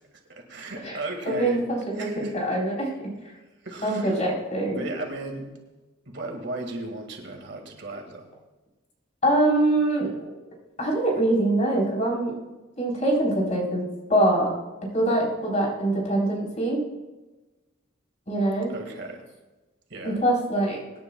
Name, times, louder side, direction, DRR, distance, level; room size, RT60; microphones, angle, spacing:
voice 1, 0.3-1.6 2.0-2.4 3.6-4.3 4.7-5.5 6.1-8.3 18.7-19.2 19.9-20.2, right 2 dB, 60° right, 2 dB, 2.0 m, -35 dB
voice 2, 1.3-2.9 3.8-4.8 9.2-10.3 10.8-12.3 12.8-14.5 14.9-16.8 18.3-18.7 20.0-20.8, right 1 dB, 35° left, -2 dB, 4.0 m, -24 dB
24.0 x 10.5 x 2.3 m, 1.1 s
head